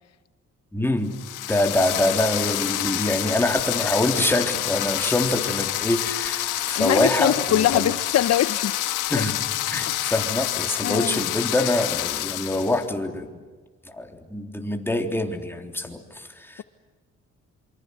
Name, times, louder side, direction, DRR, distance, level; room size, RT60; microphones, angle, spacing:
voice 1, 0.7-1.1 1.5-7.9 9.1-9.4 9.7-13.3 13.9-16.6, left 1 dB, 5° left, 4 dB, 3.5 m, -25 dB
sound 1, 1.1-12.8, left 14 dB, 90° left, 1.6 m, -28 dB
voice 2, 6.8-8.8 9.2-9.3 9.9-10.1 10.8-11.2, left 11 dB, 60° left, 14 dB, 0.8 m, -23 dB
27.5 x 25.0 x 8.2 m, 1.4 s
cardioid pair, 90°, 30 cm